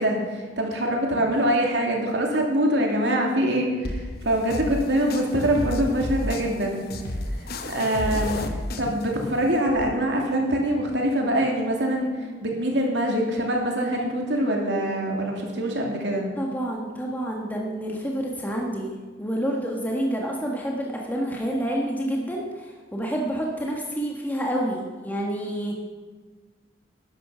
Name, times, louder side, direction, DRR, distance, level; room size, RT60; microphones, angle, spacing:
voice 1, 0.0-6.8 7.4-16.3, right 1 dB, 75° right, 0 dB, 2.7 m, -24 dB
sound 1, 3.8-9.8, left 1 dB, 60° left, 1.0 m, -32 dB
voice 2, 16.4-25.8, equal, 10° left, -2 dB, 1.5 m, -28 dB
13.0 x 11.0 x 5.7 m, 1.4 s
head